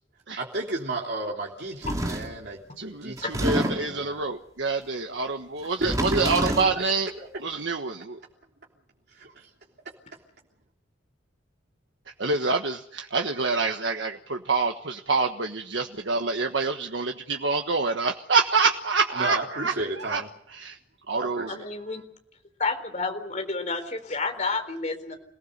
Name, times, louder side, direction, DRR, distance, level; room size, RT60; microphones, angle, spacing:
voice 1, 0.4-4.2 5.8-6.8 7.2-7.3 9.1-9.5 19.2-20.3 21.1-22.0, right 2 dB, 60° right, -2 dB, 3.3 m, -33 dB
sound 1, 1.8-2.4 3.2-4.0 5.7-6.8, right 1 dB, 20° right, 2.6 m, -27 dB
voice 2, 2.8-7.1 7.4-8.2 12.2-20.2 20.5-20.8 21.1-21.5, right 4 dB, 85° right, 4 dB, 1.4 m, -27 dB
voice 3, 21.5-22.0 22.6-25.2, left 3 dB, 40° left, 6 dB, 4.0 m, -30 dB
28.5 x 19.0 x 6.8 m, 0.70 s
head